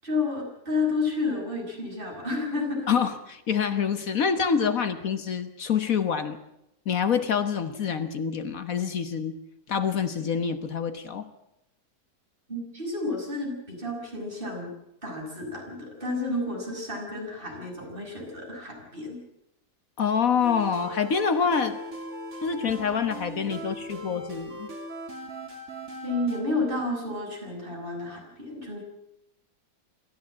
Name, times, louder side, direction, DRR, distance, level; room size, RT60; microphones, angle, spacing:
voice 1, 0.0-2.9 12.5-14.7 15.0-19.2 26.0-28.8, left 3 dB, 35° right, 0 dB, 7.1 m, -31 dB
voice 2, 2.9-6.4 6.9-9.4 9.7-11.3 20.0-21.7 22.4-24.7, left 6 dB, 65° left, 10 dB, 1.6 m, -26 dB
sound 1, 20.4-26.4, right 1 dB, 50° right, 3.6 m, -39 dB
27.0 x 13.5 x 8.8 m, 0.84 s
omnidirectional pair, 1.6 m